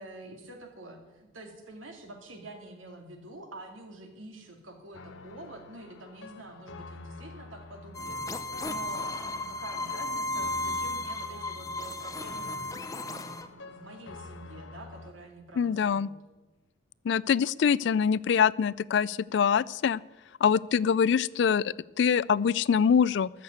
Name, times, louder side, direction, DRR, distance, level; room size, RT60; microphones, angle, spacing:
voice 1, 0.0-8.2 8.5-16.2, right 2 dB, 80° right, 3 dB, 2.4 m, -47 dB
sound 1, 4.9-15.1, left 3 dB, 75° left, 0.8 m, -47 dB
sound 2, 7.9-13.5, left 2 dB, 15° left, 0.6 m, -34 dB
voice 2, 15.6-16.1 17.1-20.0 20.4-23.3, left 7 dB, 60° left, 21 dB, 0.3 m, -24 dB
13.5 x 6.6 x 9.3 m, 1.1 s
head